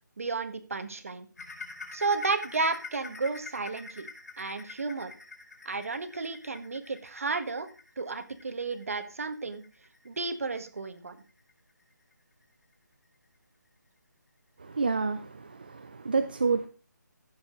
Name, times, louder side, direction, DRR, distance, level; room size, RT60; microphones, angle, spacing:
voice 1, 0.2-1.3 1.9-4.1 4.4-5.1 5.6-7.7 8.0-9.6 10.0-11.2, right 3 dB, 50° right, 10 dB, 1.5 m, -32 dB
sound 1, 1.4-12.6 13.0-13.2 13.6-13.7 14.3-14.4, left 3 dB, 55° left, 4.7 m, -46 dB
voice 2, 14.6-16.7, right 4 dB, 30° right, 7 dB, 0.5 m, -29 dB
16.0 x 7.2 x 3.8 m, 0.35 s
hypercardioid pair, 175°, 10 cm